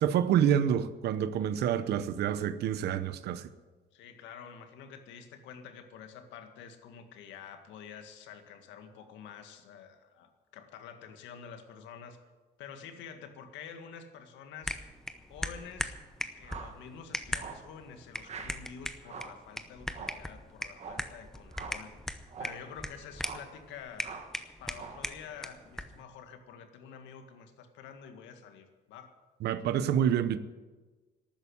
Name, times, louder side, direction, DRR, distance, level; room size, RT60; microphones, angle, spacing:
voice 1, 0.0-3.5 29.4-30.4, right 9 dB, 60° right, 0.9 m, -27 dB
voice 2, 3.9-12.2 12.6-14.8 15.3-15.9 16.4-24.1 24.6-29.1, left 7 dB, 90° left, 1.9 m, -48 dB
sound 1, 14.6-26.0, left 1 dB, 5° left, 0.7 m, -40 dB
sound 2, 16.4-16.8 17.3-17.7 18.2-18.6 19.0-19.4 19.9-20.3 20.7-21.1 21.5-21.9 22.3-22.6 23.2-23.5 24.0-24.4 24.7-25.1, right 5 dB, 35° right, 1.4 m, -44 dB
12.5 x 9.1 x 10.0 m
cardioid pair, 160°, 19 cm